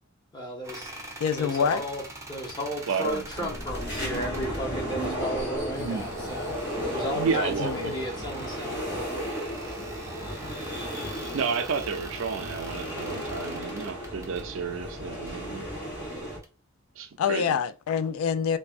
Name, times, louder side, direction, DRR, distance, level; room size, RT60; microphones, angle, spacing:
voice 1, 0.3-0.9 1.4-8.8, equal, 20° left, 0.8 m, -34 dB
sound 1, 0.6-4.6 5.7-14.5 15.1-15.4 16.4-16.5, right 2 dB, 15° right, 0.5 m, -45 dB
voice 2, 1.2-1.8 7.6-7.9 17.2-18.6, left 7 dB, 85° left, 0.3 m, -26 dB
voice 3, 2.9-3.5 5.7-6.2 7.1-8.0 11.3-15.7 17.0-17.6, right 5 dB, 65° right, 0.4 m, -31 dB
sound 2, 3.1-16.4, equal, 60° left, 1.5 m, -34 dB
3.3 x 2.1 x 2.4 m
head